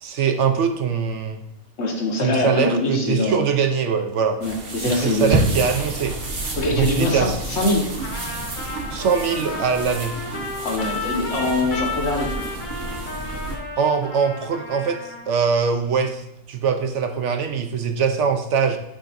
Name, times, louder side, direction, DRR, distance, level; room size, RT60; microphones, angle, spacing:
voice 1, 0.0-1.4 2.2-4.4 4.8-6.2 6.7-7.4 8.9-10.1 13.8-18.8, right 6 dB, 65° right, 6 dB, 0.9 m, -22 dB
voice 2, 1.8-3.5 4.4-5.5 6.6-7.9 10.6-12.3, left 2 dB, 55° left, 0 dB, 1.5 m, -23 dB
sound 1, 4.4-13.6, right 2 dB, 45° right, 1.2 m, -29 dB
Trumpet, 8.0-15.4, left 3 dB, 35° left, 1.4 m, -33 dB
10.5 x 5.0 x 2.6 m, 0.79 s
omnidirectional pair, 1.4 m